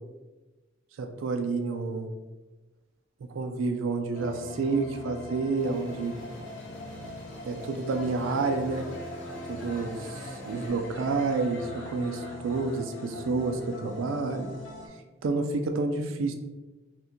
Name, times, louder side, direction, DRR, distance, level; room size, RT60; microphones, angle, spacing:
voice 1, 1.0-2.1 3.3-6.1 7.4-8.8 9.5-14.5 15.2-16.3, right 3 dB, 90° right, 6 dB, 0.4 m, -29 dB
sound 1, 4.1-14.9, left 2 dB, 70° left, 0.7 m, -41 dB
sound 2, 5.6-10.7, equal, 5° left, 0.6 m, -46 dB
2.7 x 2.6 x 3.5 m, 1.2 s
head